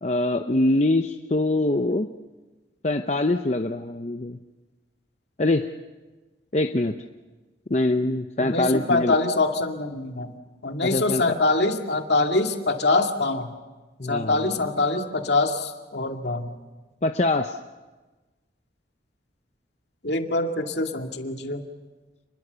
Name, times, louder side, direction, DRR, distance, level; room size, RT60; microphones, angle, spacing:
voice 1, 0.0-2.1 2.8-4.4 5.4-5.7 6.5-6.9 7.7-9.2 10.8-11.3 14.0-14.5 17.0-17.6, left 2 dB, 35° left, 6 dB, 0.7 m, -23 dB
voice 2, 8.4-10.3 10.6-13.5 14.1-16.5 20.0-21.7, left 2 dB, 65° left, 4 dB, 2.2 m, -24 dB
29.5 x 21.5 x 6.9 m, 1.2 s
head